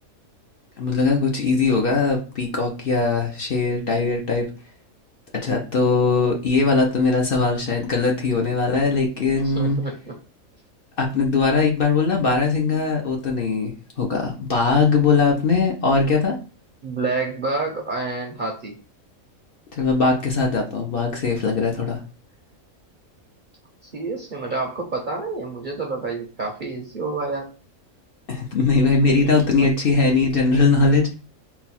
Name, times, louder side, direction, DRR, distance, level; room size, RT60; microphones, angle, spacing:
voice 1, 0.8-4.5 5.3-9.8 11.0-16.4 19.7-22.0 28.3-31.1, left 4 dB, 50° left, 1 dB, 0.8 m, -20 dB
voice 2, 9.4-10.1 16.8-18.8 23.8-27.5 29.2-29.7, right 3 dB, 45° right, 1 dB, 0.7 m, -28 dB
4.0 x 2.3 x 4.2 m, 0.35 s
omnidirectional pair, 1.5 m